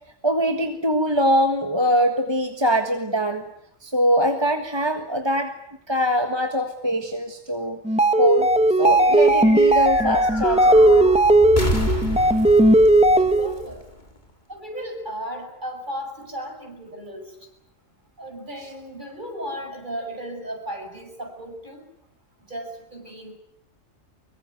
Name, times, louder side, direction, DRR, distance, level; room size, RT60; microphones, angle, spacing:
voice 1, 0.2-3.5 3.8-5.6 5.9-7.8 8.2-8.5 8.8-11.1, equal, 20° right, 5 dB, 1.7 m, -22 dB
sound 1, 7.8-13.6, right 1 dB, 5° right, 1.3 m, -16 dB
sound 2, 8.8-14.5, left 1 dB, 35° left, 3.9 m, -31 dB
voice 2, 13.2-13.8 14.5-17.4 18.2-21.9 22.5-23.4, equal, 40° right, 3 dB, 7.1 m, -35 dB
25.0 x 23.5 x 9.3 m, 0.77 s
omnidirectional pair, 1.3 m